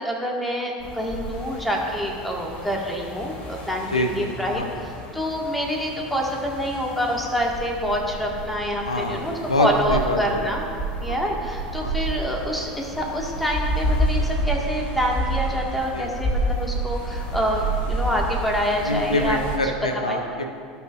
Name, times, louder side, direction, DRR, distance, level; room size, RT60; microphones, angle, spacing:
voice 1, 0.0-10.6 11.0-19.4 20.1-20.2, equal, ahead, -2 dB, 1.8 m, -26 dB
sound 1, 0.8-19.6, right 1 dB, 40° left, 1.4 m, -30 dB
voice 2, 3.9-4.3 4.5-4.8 8.8-10.5 11.1-11.2 11.8-11.9 15.9-16.1 18.8-20.4, left 1 dB, 85° left, 5 dB, 0.8 m, -25 dB
16.0 x 5.9 x 2.6 m, 2.3 s
figure-of-eight pair, 75°, 3 cm